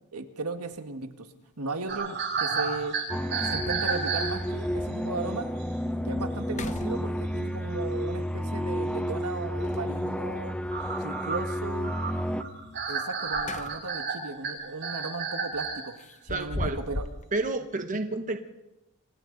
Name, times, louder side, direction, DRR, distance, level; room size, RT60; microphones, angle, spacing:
voice 1, 0.1-1.3 1.6-3.0 3.4-5.5 6.0-10.6 11.0-11.9 12.9-15.9 16.2-17.0, right 3 dB, 75° right, 7 dB, 1.7 m, -36 dB
sound 1, 0.6-0.8 2.5-2.6 3.0-3.1 3.4-3.9 4.5-4.6 5.1-5.2 5.6-6.0 6.4-7.5 9.6-10.3 13.0-14.1 14.5-14.7 16.0-17.3, left 2 dB, 35° left, 0.8 m, -38 dB
sound 2, 1.9-4.8 5.6-5.7 6.0-6.2 6.8-6.9 7.1-7.7 8.3-8.4 8.6-8.7 9.5-9.6 10.1-15.8, right 5 dB, 55° right, 7.4 m, -32 dB
sound 3, 3.1-12.4, equal, 5° left, 1.0 m, -31 dB
voice 2, 16.3-16.8 17.3-18.4, right 2 dB, 35° right, 6 dB, 1.1 m, -30 dB
29.0 x 25.5 x 4.0 m, 0.96 s
head